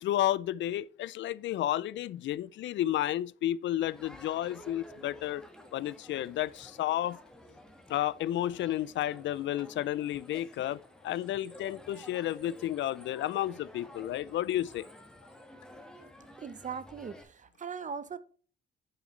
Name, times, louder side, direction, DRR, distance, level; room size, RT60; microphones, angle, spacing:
voice 1, 0.0-5.4 5.7-7.2 7.9-14.8, left 13 dB, 70° left, 0.4 m, -32 dB
Crowd, 3.8-17.2, left 1 dB, 5° left, 1.6 m, -52 dB
voice 2, 16.4-18.2, right 6 dB, 40° right, 0.8 m, -39 dB
9.6 x 7.1 x 3.2 m
cardioid pair, 90°, 20 cm